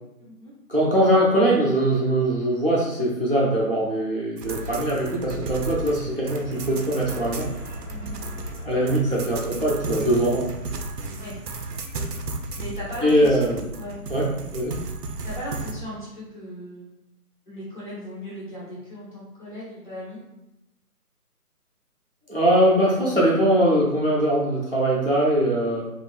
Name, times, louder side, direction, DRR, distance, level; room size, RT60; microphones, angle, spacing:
voice 1, 0.2-0.5 7.9-8.2 11.2-11.4 12.6-13.4 13.8-14.4 15.2-16.9 17.5-20.2, equal, 30° left, -8 dB, 1.3 m, -37 dB
voice 2, 0.7-7.5 8.6-10.5 13.0-13.6 14.1-14.3 14.5-14.8 22.3-25.8, right 1 dB, 40° right, -4 dB, 0.5 m, -21 dB
sound 1, 4.4-15.7, right 3 dB, 85° right, 0.6 m, -34 dB
sound 2, 6.4-10.2, left 1 dB, 90° left, 1.1 m, -42 dB
3.4 x 2.5 x 2.3 m, 0.91 s
figure-of-eight pair, 170°, 47 cm